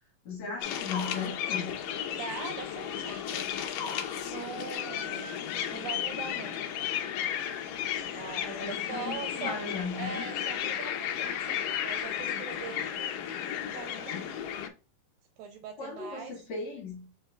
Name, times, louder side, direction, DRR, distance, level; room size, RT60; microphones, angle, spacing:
voice 1, 0.3-1.7 8.4-10.2 15.8-17.1, left 5 dB, 55° left, 2.1 m, -37 dB
sound 1, 0.6-14.7, left 9 dB, 80° left, 2.0 m, -34 dB
voice 2, 2.1-3.5 4.2-5.3 5.7-6.6 8.1-9.6 9.9-13.2 13.6-14.4 15.4-16.3, right 6 dB, 75° right, 2.3 m, -42 dB
5.4 x 4.3 x 2.2 m
omnidirectional pair, 4.5 m